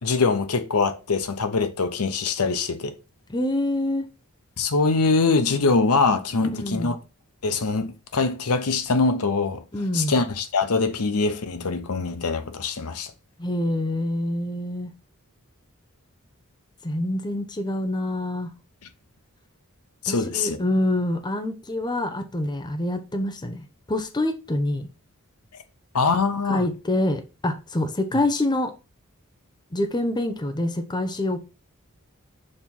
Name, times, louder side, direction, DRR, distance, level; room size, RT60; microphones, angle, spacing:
voice 1, 0.0-2.9 4.6-7.0 7.4-9.6 9.9-13.1 20.0-20.6 25.5-25.6 25.9-26.6, left 4 dB, 80° left, 0.8 m, -23 dB
voice 2, 3.3-4.0 6.5-6.9 9.7-10.1 13.4-14.9 16.8-18.5 20.1-23.6 23.9-24.8 26.5-28.7 29.7-31.4, left 1 dB, 20° left, 0.7 m, -26 dB
6.5 x 3.0 x 5.4 m
head